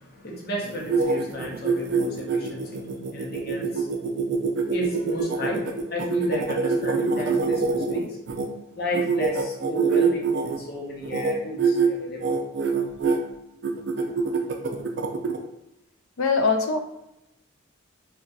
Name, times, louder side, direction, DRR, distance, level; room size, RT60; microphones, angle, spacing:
voice 1, 0.0-3.9 4.7-8.2 8.8-12.3, equal, 50° left, -2 dB, 0.7 m, -33 dB
sound 1, 0.6-8.5 8.9-10.6 11.0-11.3 11.6-11.9 12.2-13.2 13.6-15.4, right 4 dB, 55° right, 0.4 m, -25 dB
voice 2, 16.2-16.8, left 4 dB, 85° left, 5 dB, 0.4 m, -22 dB
2.3 x 2.3 x 3.8 m, 0.87 s
head